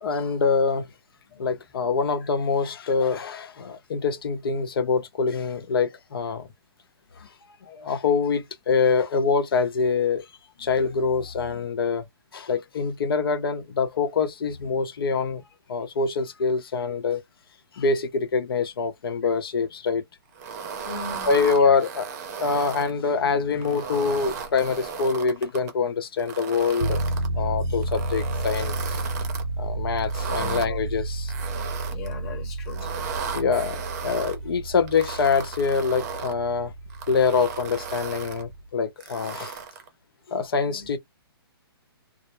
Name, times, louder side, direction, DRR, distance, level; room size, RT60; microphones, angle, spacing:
voice 1, 0.0-0.9 1.4-6.5 7.2-7.3 7.6-10.3 10.6-12.1 12.3-15.4 15.7-17.2 17.7-20.0 21.3-22.1 22.4-27.0 27.3-29.0 29.6-31.3 33.3-36.7 37.1-39.6 40.3-41.0, left 5 dB, 65° left, 0.7 m, -25 dB
sound 1, 20.4-22.9 23.5-25.7 26.2-27.3 27.8-29.4 30.0-30.7 31.3-32.1 32.7-34.4 34.9-36.4 36.9-38.4 39.0-39.9, right 6 dB, 40° right, 0.6 m, -35 dB
voice 2, 20.8-21.7 29.4-29.8 30.4-30.8 31.9-32.9 40.7-40.9, left 4 dB, 25° left, 1.0 m, -40 dB
sound 2, 26.8-38.7, right 2 dB, 85° right, 0.4 m, -31 dB
2.1 x 2.0 x 2.9 m
hypercardioid pair, 145°, 13 cm